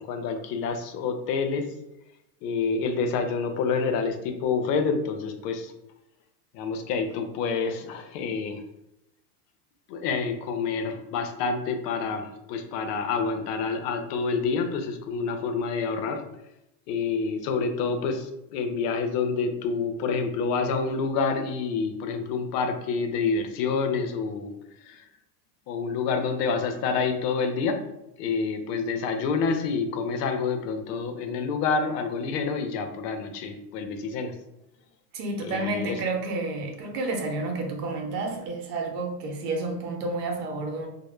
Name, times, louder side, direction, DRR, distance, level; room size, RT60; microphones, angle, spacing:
voice 1, 0.0-1.7 2.4-5.7 6.5-8.6 9.9-16.2 16.9-24.5 24.8-25.0 25.7-27.8 28.2-34.3 35.4-36.0, left 5 dB, 75° left, 0.6 m, -28 dB
voice 2, 35.1-40.9, right 2 dB, 80° right, 0.8 m, -30 dB
2.1 x 2.0 x 3.0 m
supercardioid pair, 130°, 48 cm